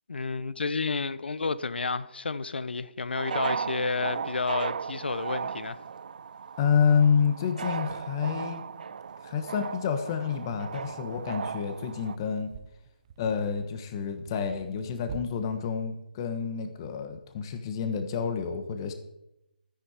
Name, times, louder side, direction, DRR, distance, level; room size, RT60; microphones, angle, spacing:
voice 1, 0.1-5.8, left 4 dB, 75° left, 0.8 m, -31 dB
sound 1, 3.1-12.2, right 6 dB, 50° right, 0.3 m, -36 dB
voice 2, 6.6-8.6 9.2-12.5 13.2-18.9, left 6 dB, 25° left, 1.3 m, -28 dB
sound 2, 11.2-15.2, right 6 dB, 25° right, 0.8 m, -47 dB
13.0 x 10.0 x 4.9 m
hypercardioid pair, 165°, 6 cm